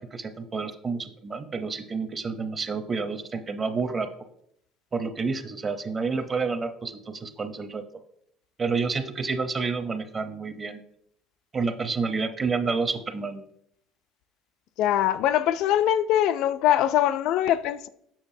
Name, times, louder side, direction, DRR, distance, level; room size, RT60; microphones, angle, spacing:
voice 1, 0.0-4.1 4.9-7.8 8.6-10.8 11.5-13.4, right 4 dB, 25° right, 0.7 m, -29 dB
voice 2, 14.8-17.9, left 11 dB, 70° left, 0.3 m, -22 dB
7.2 x 6.6 x 2.7 m
cardioid pair, 120°, 0 cm